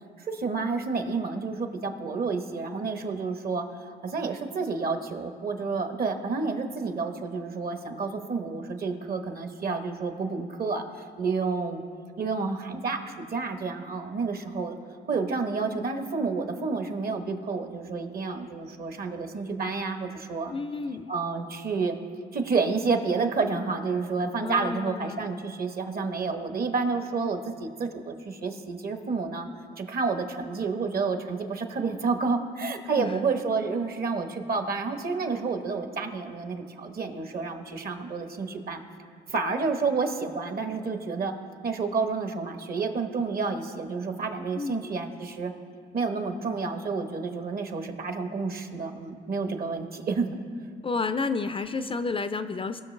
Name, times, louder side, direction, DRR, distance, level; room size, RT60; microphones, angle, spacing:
voice 1, 0.2-3.6 4.0-10.8 11.2-11.8 12.2-14.8 15.0-20.5 21.1-22.0 22.3-29.5 29.8-38.8 39.3-41.3 41.6-45.5 45.9-50.3, right 4 dB, 50° right, 6 dB, 1.1 m, -30 dB
voice 2, 20.5-21.1 24.4-25.3 33.0-33.1 44.6-44.9 50.8-52.8, left 4 dB, 25° left, 10 dB, 0.4 m, -31 dB
19.0 x 6.4 x 3.3 m, 2.1 s
cardioid pair, 90°, 20 cm